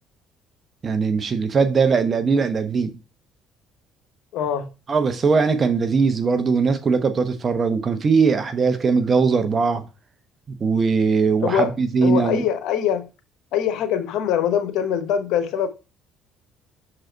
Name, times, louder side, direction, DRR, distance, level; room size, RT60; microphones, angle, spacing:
voice 1, 0.8-2.9 4.9-9.8 10.5-12.4, right 5 dB, 40° right, 0.9 m, -20 dB
voice 2, 4.3-4.7 11.4-11.7 12.0-13.1 13.5-15.7, left 9 dB, 70° left, 0.9 m, -23 dB
6.4 x 3.9 x 4.5 m
supercardioid pair, 75°, 0 cm